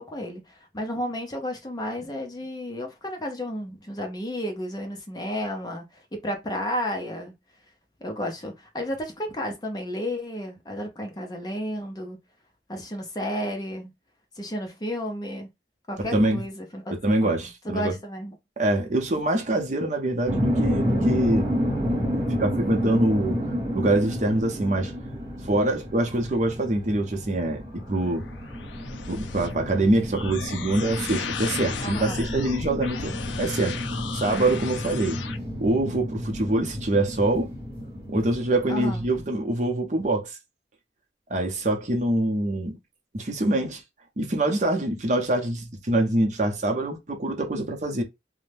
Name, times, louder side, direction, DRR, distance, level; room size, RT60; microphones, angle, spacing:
voice 1, 0.0-7.3 8.0-12.2 12.7-13.9 14.4-15.5 15.9-17.0 17.2-18.3 31.8-32.2 38.7-39.1, equal, 20° left, 0.5 m, -32 dB
voice 2, 16.0-16.4 16.9-17.9 18.6-21.5 22.3-23.4 23.7-24.9 25.5-28.2 29.1-33.1 33.4-33.8 34.1-35.2 35.6-37.5 38.1-40.4 41.3-42.8 43.1-43.8 44.2-48.0, right 1 dB, 40° right, 0.6 m, -24 dB
sound 1, 20.3-39.2, equal, 15° right, 1.4 m, -30 dB
sound 2, 27.7-35.4, left 6 dB, 75° left, 0.4 m, -36 dB
2.6 x 2.1 x 3.3 m
head